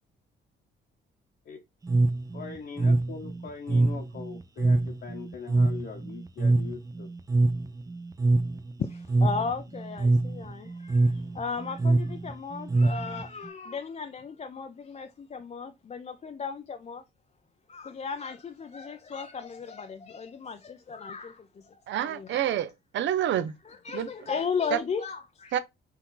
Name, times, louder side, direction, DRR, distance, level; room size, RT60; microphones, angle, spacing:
sound 1, 1.9-13.5, right 2 dB, 15° right, 0.5 m, -25 dB
voice 1, 2.3-7.1, left 5 dB, 55° left, 1.0 m, -41 dB
voice 2, 8.8-17.0 17.7-21.6 21.9-22.4 23.7-25.5, left 5 dB, 35° left, 0.5 m, -35 dB
voice 3, 21.9-23.5 23.9-24.1 24.7-24.8 25.5-25.6, right 10 dB, 70° right, 0.6 m, -28 dB
4.6 x 2.7 x 3.7 m
cardioid pair, 90°, 20 cm